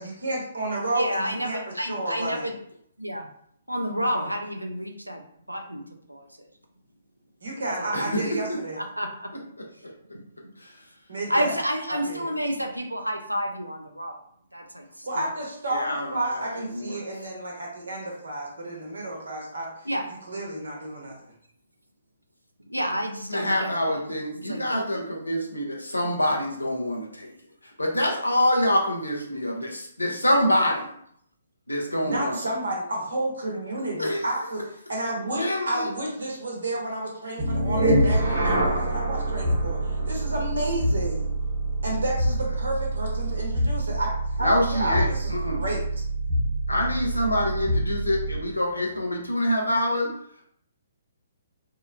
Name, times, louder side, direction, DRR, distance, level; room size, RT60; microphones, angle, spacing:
voice 1, 0.0-2.5 7.4-8.8 11.1-11.5 11.9-12.3 15.0-19.7 20.3-21.1 32.0-39.8 40.1-41.3 41.8-45.8 47.1-47.2, right 1 dB, 65° right, -1 dB, 0.9 m, -31 dB
voice 2, 1.0-2.5 3.0-3.3 3.7-5.2 5.5-5.8 6.1-6.5 7.8-7.9 8.8-9.3 11.3-14.2 14.5-15.3 19.9-20.1 22.7-24.0 24.5-25.0, equal, 90° right, 4 dB, 0.4 m, -30 dB
voice 3, 7.9-8.6 10.6-10.8 15.7-17.0 23.3-27.3 27.8-30.9 31.7-32.4 34.0-34.5 35.3-35.9 44.4-45.6 46.7-50.1, left 1 dB, 85° left, -1 dB, 0.7 m, -26 dB
sound 1, 37.4-48.5, right 1 dB, 40° right, 0.9 m, -26 dB
2.7 x 2.1 x 2.5 m, 0.67 s
figure-of-eight pair, 130°, 0 cm